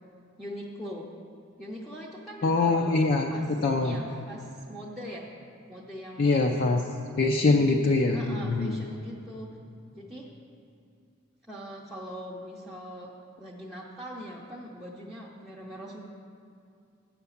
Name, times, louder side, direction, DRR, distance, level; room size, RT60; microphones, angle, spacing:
voice 1, 0.4-1.1 1.6-3.0 3.3-5.3 5.7-6.7 8.1-9.5 9.9-10.3 11.5-13.1 13.4-16.0, equal, ahead, -5 dB, 0.6 m, -41 dB
voice 2, 2.4-3.3 3.6-4.0 6.2-6.8 7.2-8.8, left 3 dB, 45° left, 1 dB, 0.4 m, -23 dB
8.6 x 5.8 x 7.0 m, 2.5 s
head